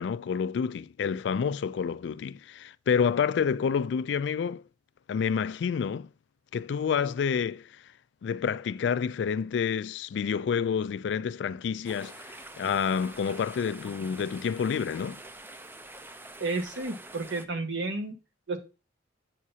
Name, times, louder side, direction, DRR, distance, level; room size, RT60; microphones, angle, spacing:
voice 1, 0.0-4.6 5.1-6.1 6.5-7.7 8.2-15.2, left 6 dB, 65° left, 0.3 m, -29 dB
sound 1, 11.8-17.4, right 2 dB, 10° right, 0.4 m, -46 dB
voice 2, 16.4-18.1 18.5-18.6, right 3 dB, 85° right, 1.3 m, -31 dB
8.5 x 6.1 x 2.8 m
head